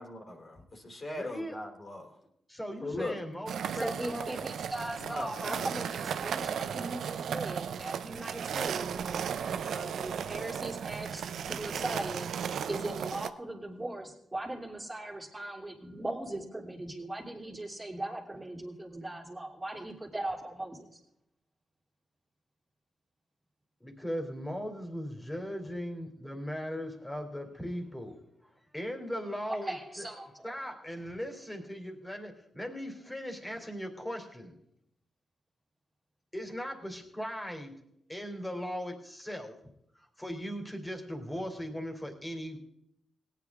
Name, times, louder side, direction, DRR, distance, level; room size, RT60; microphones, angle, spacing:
voice 1, 0.0-2.1 2.8-3.2 5.1-5.7, left 2 dB, 40° left, 2 dB, 3.3 m, -39 dB
voice 2, 1.1-1.7 2.5-4.4 9.1-9.8 23.8-30.1 30.4-34.6 36.3-37.8 38.1-39.6 39.9-42.6, equal, 15° left, 4 dB, 3.0 m, -39 dB
sound 1, 3.5-13.3, right 8 dB, 70° right, 0.5 m, -35 dB
voice 3, 3.7-12.3 12.7-21.0 29.5-30.5, right 1 dB, 20° right, -2 dB, 2.8 m, -39 dB
17.5 x 9.5 x 3.6 m, 0.77 s
supercardioid pair, 45°, 0 cm